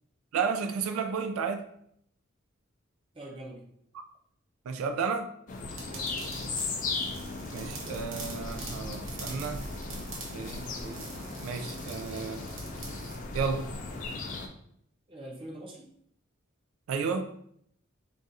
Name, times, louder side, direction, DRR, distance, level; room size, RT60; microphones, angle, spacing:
voice 1, 0.3-1.6 4.7-5.3 7.5-9.6 10.3-11.1 11.4-12.4 13.3-13.7 16.9-17.3, right 5 dB, 90° right, 7 dB, 0.3 m, -32 dB
voice 2, 3.1-3.7 5.8-6.6 15.1-15.9, right 1 dB, 25° right, -1 dB, 0.6 m, -44 dB
sound 1, 5.5-14.5, left 3 dB, 40° left, 0.3 m, -37 dB
sound 2, 5.8-13.2, right 4 dB, 70° right, 0.7 m, -45 dB
2.5 x 2.4 x 4.0 m, 0.69 s
head